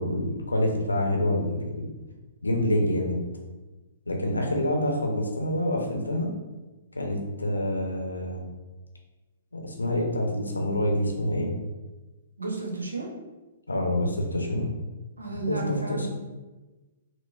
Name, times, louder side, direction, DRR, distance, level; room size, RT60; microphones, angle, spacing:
voice 1, 0.0-1.9 2.4-3.2 4.1-6.3 6.9-8.4 9.5-11.5 13.7-14.7 15.4-16.1, left 1 dB, 80° left, 1 dB, 0.6 m, -27 dB
voice 2, 12.4-13.1 15.2-16.1, right 3 dB, 80° right, -1 dB, 0.8 m, -32 dB
4.5 x 2.0 x 2.4 m, 1.2 s
figure-of-eight pair, 115°, 0 cm